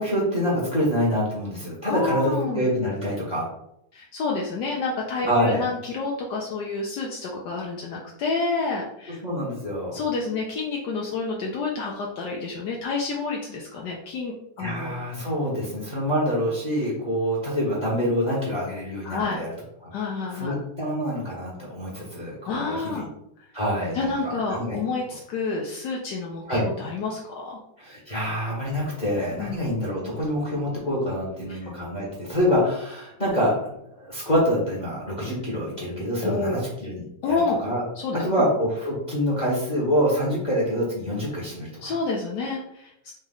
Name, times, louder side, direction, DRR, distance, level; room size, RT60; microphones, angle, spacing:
voice 1, 0.0-3.5 5.3-5.6 9.2-10.0 14.6-19.5 19.8-19.9 20.3-23.1 23.5-24.8 26.5-26.7 27.8-33.5 33.9-37.4 37.6-37.8 38.2-41.9, equal, 25° left, -6 dB, 1.2 m, -26 dB
voice 2, 1.9-2.6 3.9-9.2 9.9-14.9 19.0-19.4 19.9-20.6 22.5-23.1 23.9-27.6 29.4-29.6 31.5-31.6 36.2-36.6 37.2-37.6 38.0-38.5 41.8-43.1, left 4 dB, 70° left, -1 dB, 1.2 m, -29 dB
4.1 x 3.1 x 3.7 m, 0.78 s
omnidirectional pair, 1.9 m